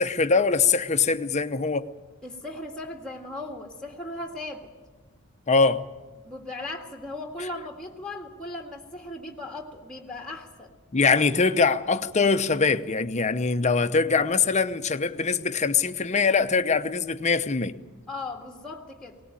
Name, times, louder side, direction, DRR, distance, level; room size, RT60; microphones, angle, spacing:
voice 1, 0.0-1.9 5.5-5.9 10.9-17.8, left 4 dB, 35° left, 0.8 m, -23 dB
voice 2, 2.2-4.7 6.2-10.7 18.1-19.2, left 2 dB, 5° left, 1.9 m, -37 dB
20.5 x 18.5 x 8.9 m
head